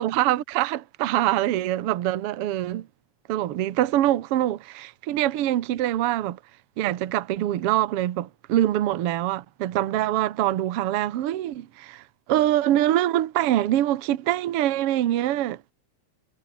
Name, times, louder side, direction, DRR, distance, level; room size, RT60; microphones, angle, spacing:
voice 1, 0.0-2.9 3.3-6.4 6.8-12.0 12.3-15.7, right 13 dB, 60° right, 1.8 m, -24 dB
omnidirectional pair, 3.4 m